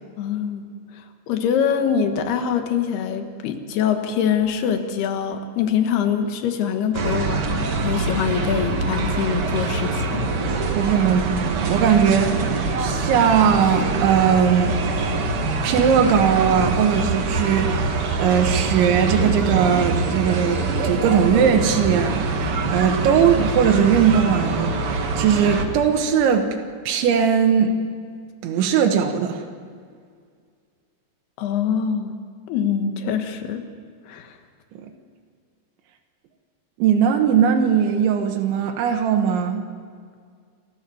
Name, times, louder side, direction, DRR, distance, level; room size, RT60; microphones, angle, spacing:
voice 1, 0.2-0.6 0.9-10.2 31.4-32.1 32.5-33.6 34.1-34.4, left 7 dB, 70° left, 6 dB, 3.2 m, -24 dB
sound 1, 6.9-25.6, right 3 dB, 65° right, 1.4 m, -24 dB
voice 2, 10.7-12.4 12.8-14.8 15.6-26.5 26.9-27.8 28.4-29.4 36.8-39.7, right 7 dB, 90° right, 3 dB, 3.7 m, -19 dB
29.0 x 13.5 x 7.1 m, 2.1 s
omnidirectional pair, 5.1 m